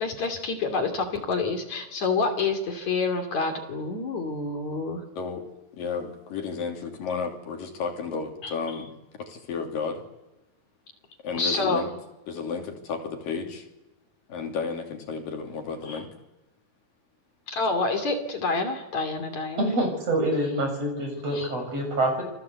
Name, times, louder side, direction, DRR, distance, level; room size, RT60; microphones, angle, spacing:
voice 1, 0.0-5.0 8.4-8.5 11.3-11.9 15.9-16.0 17.5-19.7 21.3-21.5, left 3 dB, 55° left, 6 dB, 3.9 m, -28 dB
voice 2, 5.2-5.5 5.7-8.9 9.2-10.0 11.2-11.9 12.3-13.7 14.3-16.1, left 5 dB, 70° left, 3 dB, 4.6 m, -32 dB
voice 3, 19.6-22.2, right 1 dB, 45° right, 3 dB, 8.2 m, -26 dB
29.0 x 24.0 x 8.3 m, 1.0 s
omnidirectional pair, 4.1 m